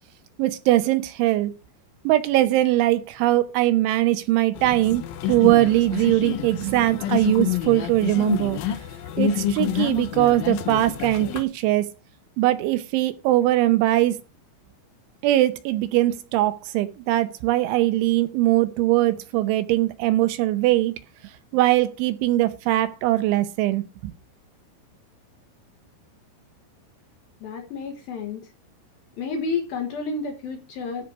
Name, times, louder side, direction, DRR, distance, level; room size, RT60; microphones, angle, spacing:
voice 1, 0.4-1.5 2.0-5.0 5.3-8.6 9.2-11.9 12.4-14.2 15.2-20.9 21.5-24.1, right 15 dB, 80° right, 3.1 m, -21 dB
sound 1, 4.5-11.4, left 10 dB, 85° left, 2.1 m, -28 dB
voice 2, 27.4-28.4 29.2-31.1, left 4 dB, 65° left, 2.7 m, -30 dB
13.0 x 5.0 x 5.9 m
omnidirectional pair, 5.7 m